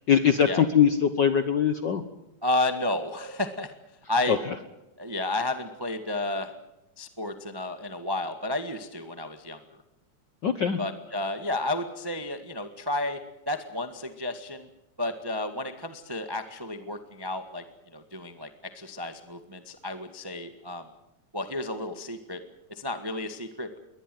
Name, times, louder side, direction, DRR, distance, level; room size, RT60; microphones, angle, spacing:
voice 1, 0.1-2.0 4.3-4.4 10.4-10.8, left 8 dB, 90° left, 10 dB, 0.9 m, -22 dB
voice 2, 2.4-3.7 4.1-4.4 5.0-6.5 7.0-9.6 10.8-13.2 13.5-14.7 15.0-17.6 17.9-20.9 21.3-22.4 22.7-23.8, left 2 dB, 25° right, 8 dB, 0.5 m, -32 dB
22.5 x 19.0 x 7.8 m, 0.95 s
omnidirectional pair, 3.7 m